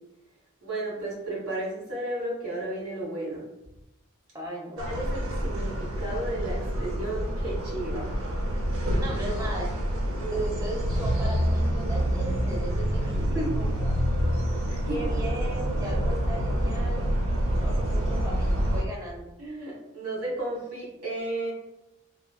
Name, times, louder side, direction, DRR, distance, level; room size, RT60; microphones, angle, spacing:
voice 1, 0.6-3.4 4.7-8.1 13.1-13.5 14.7-15.0 19.4-21.5, right 1 dB, 90° right, -4 dB, 1.3 m, -33 dB
voice 2, 4.3-4.8 9.0-9.7 10.1-13.1 13.5-14.0 14.9-17.1 17.6-19.3, right 1 dB, 15° right, -2 dB, 0.6 m, -36 dB
sound 1, 4.8-18.8, equal, 65° right, 0.5 m, -27 dB
3.5 x 2.1 x 2.2 m, 0.91 s
head